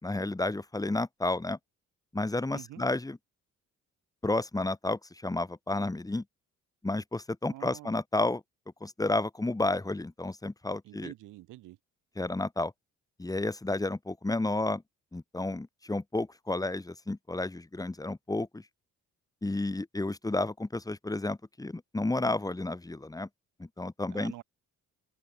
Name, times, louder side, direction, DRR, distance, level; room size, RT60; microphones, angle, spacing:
voice 1, 0.0-1.6 2.1-3.2 4.2-6.2 6.8-8.4 8.8-11.1 12.2-12.7 13.2-14.8 15.1-18.6 19.4-23.3 23.6-24.3, left 2 dB, 10° left, 1.8 m, -31 dB
voice 2, 2.5-2.8 7.5-8.0 10.8-11.8 24.1-24.4, right 16 dB, 90° right, 3.6 m, -46 dB
cardioid pair, 90°, 30 cm